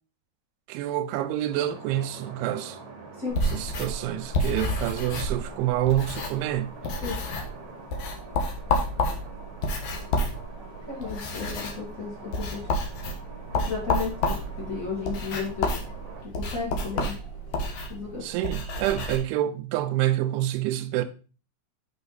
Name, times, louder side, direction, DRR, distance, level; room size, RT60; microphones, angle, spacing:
voice 1, 0.7-2.8 3.4-6.7 18.2-21.1, right 13 dB, 85° right, 2.9 m, -27 dB
sound 1, 1.5-16.2, right 4 dB, 65° right, 1.9 m, -45 dB
sound 2, 1.7-18.4, right 1 dB, 60° left, 0.8 m, -50 dB
sound 3, 3.3-6.6 6.8-7.6 7.9-19.2, left 2 dB, 85° left, 1.7 m, -30 dB
voice 2, 10.9-12.8 13.5-15.7 16.2-17.1 17.9-18.3, left 5 dB, 35° left, 1.3 m, -34 dB
8.5 x 5.2 x 4.0 m
omnidirectional pair, 5.5 m